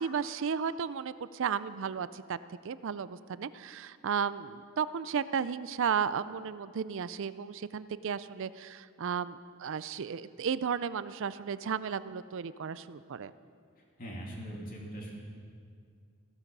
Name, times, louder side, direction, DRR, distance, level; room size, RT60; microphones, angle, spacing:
voice 1, 0.0-2.4 2.6-13.3, right 6 dB, 60° right, 15 dB, 0.4 m, -34 dB
voice 2, 14.0-15.1, right 1 dB, 40° left, -2 dB, 2.8 m, -41 dB
16.0 x 13.0 x 5.4 m, 2.3 s
head